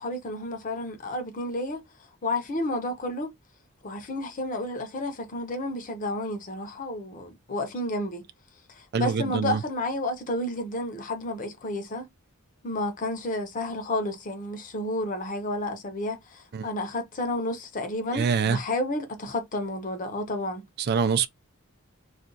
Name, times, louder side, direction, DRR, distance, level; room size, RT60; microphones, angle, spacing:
voice 1, 0.0-1.8 2.2-3.3 3.8-8.2 8.7-12.1 12.6-20.6, left 1 dB, 40° left, 0.7 m, -31 dB
voice 2, 8.9-9.6 16.5-16.7 18.1-18.6 20.8-21.3, right 6 dB, 50° right, 0.4 m, -25 dB
2.5 x 2.3 x 3.8 m
head